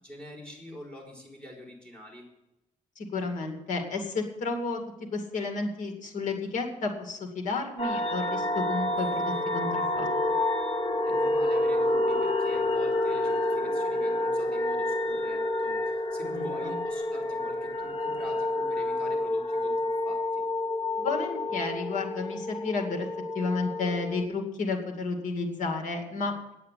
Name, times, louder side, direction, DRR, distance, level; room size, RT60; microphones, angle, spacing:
voice 1, 0.0-2.3 11.0-20.4, left 1 dB, 10° left, 0 dB, 4.0 m, -45 dB
voice 2, 3.0-4.8 5.1-10.1 16.2-16.7 21.0-23.1 23.3-26.3, left 3 dB, 75° left, 4 dB, 2.2 m, -32 dB
sound 1, 7.8-24.3, left 1 dB, 45° left, 1.1 m, -29 dB
9.3 x 8.7 x 8.4 m, 0.91 s
cardioid pair, 125°, 13 cm